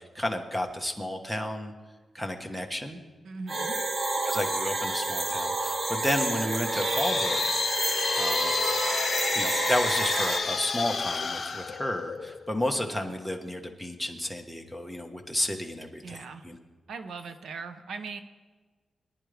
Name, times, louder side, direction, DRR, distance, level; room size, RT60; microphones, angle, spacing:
voice 1, 0.0-1.7 2.1-3.0 4.2-7.6 8.2-8.5 9.3-16.2 16.4-16.6, left 1 dB, 5° right, 5 dB, 1.4 m, -32 dB
voice 2, 3.2-3.8 16.0-16.5 16.9-18.2, right 4 dB, 85° right, 9 dB, 0.9 m, -39 dB
sound 1, 3.5-10.4, right 2 dB, 45° right, 1.1 m, -29 dB
sound 2, 6.5-12.5, left 5 dB, 50° left, 1.0 m, -30 dB
23.0 x 10.5 x 3.5 m, 1.4 s
wide cardioid pair, 125°, 0 cm